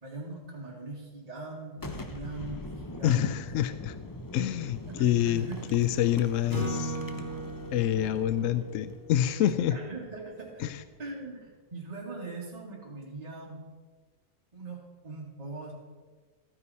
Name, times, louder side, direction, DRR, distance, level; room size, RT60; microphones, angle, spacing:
voice 1, 0.0-3.7 4.9-5.7 9.7-10.6 11.0-13.6 14.5-15.7, right 2 dB, 30° right, -4 dB, 1.9 m, -41 dB
Boom, 1.8-11.3, left 1 dB, 25° left, 0.5 m, -44 dB
voice 2, 3.0-4.0 4.3-7.0 7.7-9.8 10.6-10.8, left 11 dB, 75° left, 12 dB, 0.9 m, -27 dB
Acoustic guitar / Strum, 6.5-9.8, right 1 dB, 50° left, 3.2 m, -37 dB
13.5 x 9.7 x 4.1 m, 1.4 s
omnidirectional pair, 1.4 m